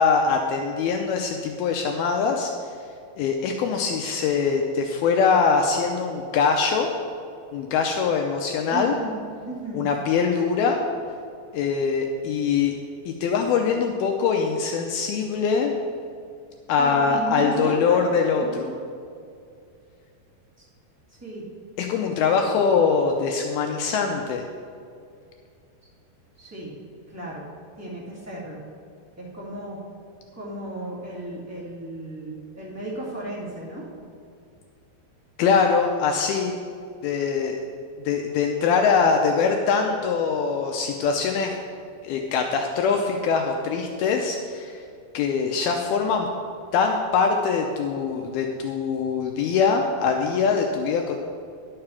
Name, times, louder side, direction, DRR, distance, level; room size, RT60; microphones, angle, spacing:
voice 1, 0.0-2.5 3.2-6.9 7.5-9.0 9.7-10.8 11.5-12.7 13.1-15.7 16.7-18.7 21.8-24.5 35.4-36.6 37.0-37.6 38.1-41.6 42.0-44.8 45.1-46.3 46.7-51.2, left 5 dB, 80° left, 3 dB, 2.3 m, -23 dB
voice 2, 8.7-9.1 9.4-9.9 16.8-18.0 18.4-18.8 20.6-20.7 21.1-21.5 22.0-22.4 26.4-26.7 27.1-27.4 27.7-28.6 29.2-29.8 30.3-33.9, right 1 dB, 5° right, -8 dB, 1.1 m, -34 dB
11.5 x 6.8 x 5.8 m, 2.4 s
omnidirectional pair, 4.7 m